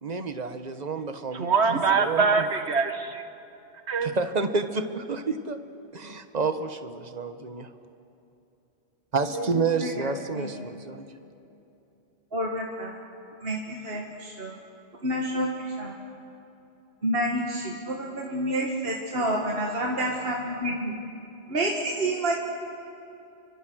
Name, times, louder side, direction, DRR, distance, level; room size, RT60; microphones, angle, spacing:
voice 1, 0.0-1.5 2.0-2.5 4.0-5.6 5.9-7.7 9.1-11.1, right 4 dB, 40° right, 8 dB, 1.4 m, -29 dB
voice 2, 1.3-3.2 3.9-4.2, right 5 dB, 75° right, 7 dB, 1.7 m, -23 dB
voice 3, 9.8-10.5 12.3-13.0 13.4-14.6 15.0-15.9 17.0-20.9 21.5-22.4, right 1 dB, 60° right, -1 dB, 2.1 m, -29 dB
30.0 x 24.5 x 6.3 m, 2.9 s
omnidirectional pair, 1.1 m